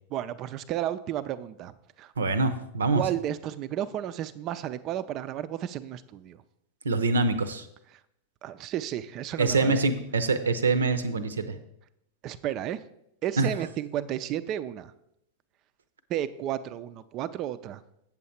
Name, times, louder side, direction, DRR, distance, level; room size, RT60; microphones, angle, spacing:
voice 1, 0.1-1.7 2.0-2.1 2.9-6.4 8.4-9.8 12.2-12.8 13.2-14.9 16.1-17.8, right 11 dB, 35° right, 14 dB, 0.5 m, -32 dB
voice 2, 2.2-3.0 6.8-7.7 9.4-11.5 13.4-13.5, right 3 dB, 70° right, 12 dB, 0.7 m, -25 dB
8.4 x 7.2 x 4.3 m, 0.78 s
figure-of-eight pair, 90°, 0 cm